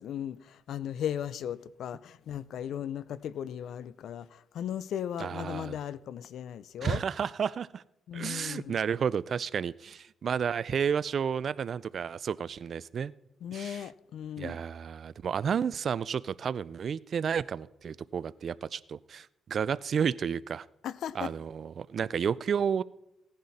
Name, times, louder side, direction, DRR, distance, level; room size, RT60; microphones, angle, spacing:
voice 1, 0.0-7.0 8.1-8.8 13.4-14.6 20.8-21.3, left 9 dB, 70° left, 0.5 m, -37 dB
voice 2, 5.2-5.8 6.8-7.8 8.1-13.1 13.5-13.9 14.4-20.7 21.1-22.8, right 7 dB, 50° right, 0.4 m, -31 dB
17.5 x 10.5 x 4.2 m
cardioid pair, 90°, 0 cm